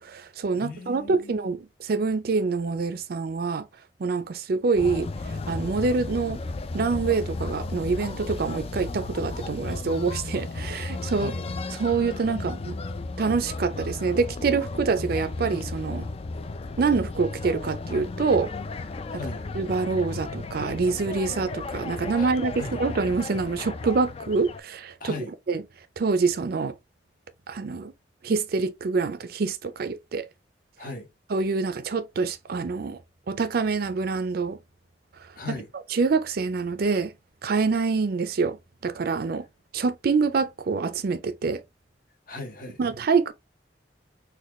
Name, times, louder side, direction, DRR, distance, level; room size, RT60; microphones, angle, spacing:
voice 1, 0.0-3.6 4.0-5.1 5.5-6.4 6.7-11.3 11.8-12.8 13.2-16.1 16.8-18.5 19.6-25.1 25.5-25.6 26.0-26.7 27.5-27.9 28.2-30.3 31.3-33.0 33.3-34.6 35.9-37.1 37.4-38.6 38.8-39.5 39.7-41.6 42.8-43.3, right 4 dB, 55° right, 0.4 m, -26 dB
voice 2, 0.6-1.5 11.1-11.4 19.2-19.4 22.2-22.3 22.5-22.8 25.0-25.3 30.8-31.1 35.4-35.7 42.3-42.8, left 3 dB, 50° left, 1.0 m, -37 dB
sound 1, 4.7-24.6, left 3 dB, 35° left, 0.3 m, -34 dB
4.1 x 2.3 x 3.0 m
head